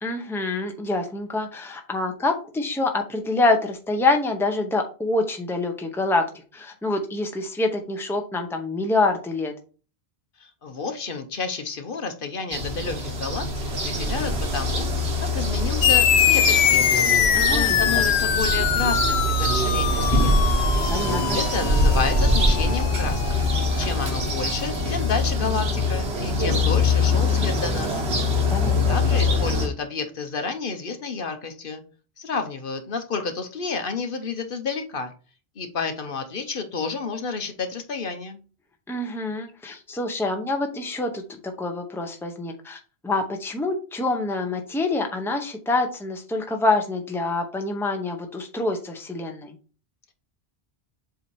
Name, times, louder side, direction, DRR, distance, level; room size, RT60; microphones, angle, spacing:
voice 1, 0.0-6.2 6.5-9.5 17.3-17.8 20.9-21.4 28.5-29.0 38.9-49.5, left 2 dB, 5° left, 4 dB, 0.8 m, -26 dB
voice 2, 10.4-17.0 17.5-20.5 21.3-23.5 23.8-28.0 28.9-31.8 32.2-35.1 35.6-38.4, left 4 dB, 60° left, 7 dB, 1.0 m, -30 dB
sound 1, 12.5-29.7, left 1 dB, 80° right, 1.5 m, -23 dB
sound 2, 15.8-24.7, left 10 dB, 90° left, 0.8 m, -23 dB
7.7 x 2.8 x 4.6 m, 0.37 s
omnidirectional pair, 1.1 m